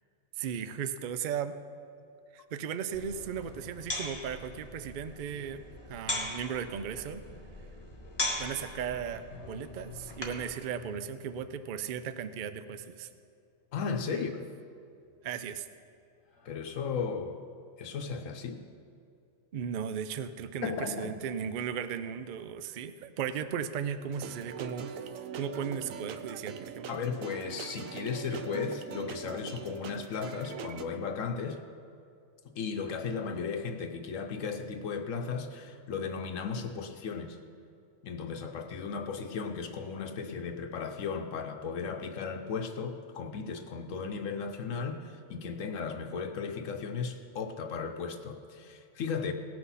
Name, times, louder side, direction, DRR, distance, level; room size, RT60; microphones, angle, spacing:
voice 1, 0.3-1.5 2.3-7.2 8.4-13.1 14.1-14.3 15.2-15.7 19.5-25.1 25.3-27.0, right 7 dB, 55° right, 11 dB, 0.5 m, -36 dB
sound 1, 2.9-10.5, left 1 dB, 20° left, 1.4 m, -39 dB
sound 2, 9.3-13.2 15.0-15.5 15.9-16.0 16.2-16.9, left 4 dB, 55° left, 1.2 m, -52 dB
voice 2, 13.7-14.4 16.4-17.4 17.8-18.6 20.6-21.2 26.9-31.6 32.6-37.4 38.0-49.3, left 5 dB, 75° left, 6 dB, 1.1 m, -35 dB
sound 3, 24.1-30.8, right 7 dB, 85° right, 1.0 m, -42 dB
18.0 x 6.1 x 5.6 m, 2.5 s
omnidirectional pair, 1.4 m